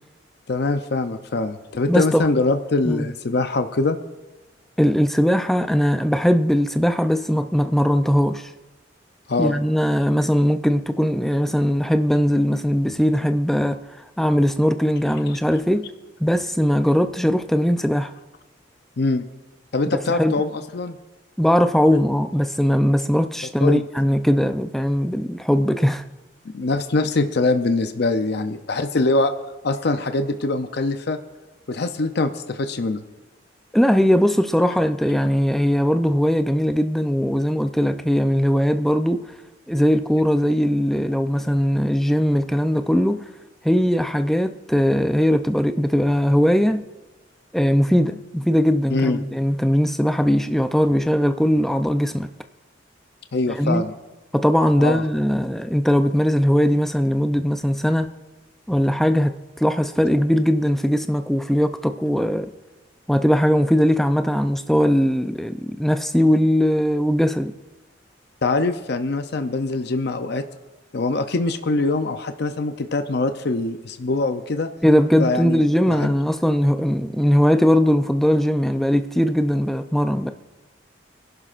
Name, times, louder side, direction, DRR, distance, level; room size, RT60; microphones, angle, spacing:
voice 1, 0.5-4.0 9.3-9.6 19.0-19.3 19.7-21.0 23.6-23.8 26.5-29.3 29.6-31.2 31.7-33.0 48.9-49.2 53.3-53.9 54.8-55.0 68.4-70.4 70.9-74.7 75.2-75.6 75.9-76.1, left 3 dB, 55° left, 0.6 m, -23 dB
voice 2, 1.9-2.3 2.9-3.1 4.8-8.5 9.4-13.8 14.2-15.9 16.2-18.1 19.9-20.4 21.4-26.0 33.7-39.2 39.7-43.2 43.6-46.8 47.5-52.3 53.5-53.8 54.3-58.1 58.7-62.5 63.1-67.5 74.8-80.3, equal, ahead, 0.4 m, -20 dB
24.0 x 11.0 x 2.5 m
head